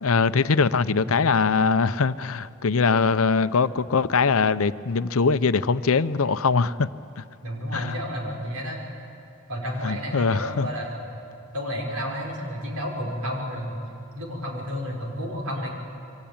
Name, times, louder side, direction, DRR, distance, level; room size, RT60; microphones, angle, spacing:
voice 1, 0.0-6.9 7.2-7.3 7.7-7.9 9.8-10.7, left 4 dB, 75° left, 14 dB, 0.6 m, -22 dB
voice 2, 7.4-8.8 9.5-11.1 11.5-13.8 14.1-15.7, equal, 85° right, 0 dB, 5.9 m, -31 dB
28.0 x 23.5 x 8.8 m, 2.5 s
head